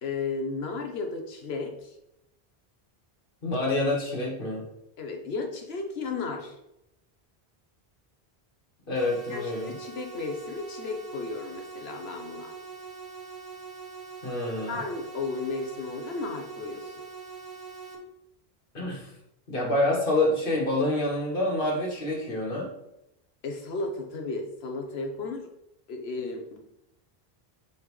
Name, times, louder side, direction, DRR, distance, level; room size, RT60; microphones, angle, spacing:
voice 1, 0.0-2.0 5.0-6.6 9.3-12.5 14.7-17.0 23.4-25.5 25.9-26.6, left 3 dB, 85° left, 3 dB, 1.2 m, -34 dB
voice 2, 3.4-4.6 8.9-9.8 14.2-14.8 18.7-19.1 19.5-22.7, left 1 dB, 60° left, -2 dB, 1.8 m, -27 dB
sound 1, 8.9-17.9, right 5 dB, 65° right, 1.4 m, -43 dB
5.6 x 5.4 x 3.2 m, 0.85 s
omnidirectional pair, 1.0 m